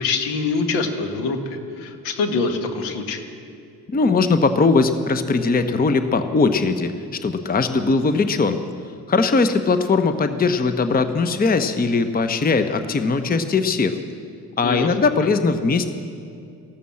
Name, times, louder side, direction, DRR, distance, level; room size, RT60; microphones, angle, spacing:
voice 1, 0.0-3.3 14.6-15.0, left 4 dB, 65° left, 6 dB, 1.7 m, -24 dB
voice 2, 3.9-8.6 9.1-14.0 14.6-15.9, left 4 dB, 20° left, 10 dB, 0.9 m, -20 dB
14.5 x 12.5 x 7.6 m, 2.4 s
figure-of-eight pair, 45°, 46 cm